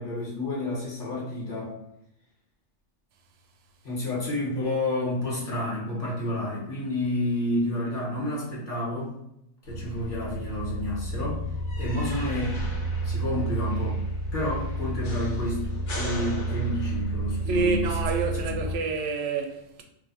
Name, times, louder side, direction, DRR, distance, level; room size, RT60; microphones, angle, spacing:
voice 1, 0.0-1.7 3.8-9.1 9.7-11.4 11.8-12.6 13.0-14.0 14.3-18.0 18.4-18.7, left 1 dB, 50° left, 1.2 m, -30 dB
sound 1, 9.7-18.8, right 2 dB, 90° left, 1.1 m, -31 dB
voice 2, 17.5-19.8, right 4 dB, 85° right, 0.9 m, -28 dB
2.6 x 2.2 x 4.1 m
omnidirectional pair, 1.2 m